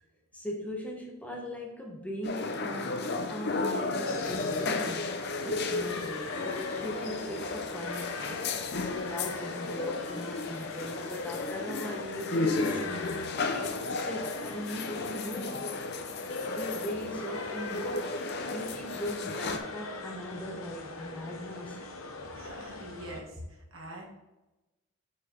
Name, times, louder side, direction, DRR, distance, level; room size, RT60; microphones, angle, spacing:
voice 1, 0.3-8.5 9.0-13.1 13.4-15.7 16.5-21.8, equal, 5° left, -1 dB, 1.0 m, -40 dB
sound 1, 2.2-19.6, left 3 dB, 50° left, 0.6 m, -34 dB
sound 2, 4.1-23.2, left 3 dB, 85° left, 0.9 m, -41 dB
voice 2, 22.3-24.0, right 1 dB, 80° right, -1 dB, 1.8 m, -44 dB
6.2 x 4.9 x 4.3 m, 1.0 s
head